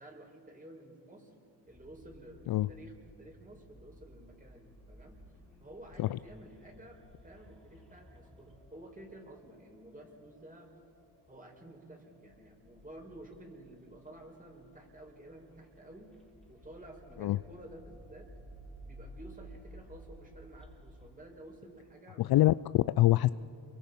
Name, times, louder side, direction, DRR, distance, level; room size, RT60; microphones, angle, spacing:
voice 1, 0.0-1.3 1.7-5.2 5.6-10.7 11.3-16.1 16.5-18.3 18.9-22.5, right 1 dB, 15° right, 2 dB, 5.3 m, -52 dB
sound 1, 1.7-21.1, equal, ahead, 4.1 m, -56 dB
voice 2, 22.2-23.3, left 15 dB, 50° left, 16 dB, 0.5 m, -25 dB
28.5 x 23.5 x 5.5 m, 2.7 s
supercardioid pair, 80°, 47 cm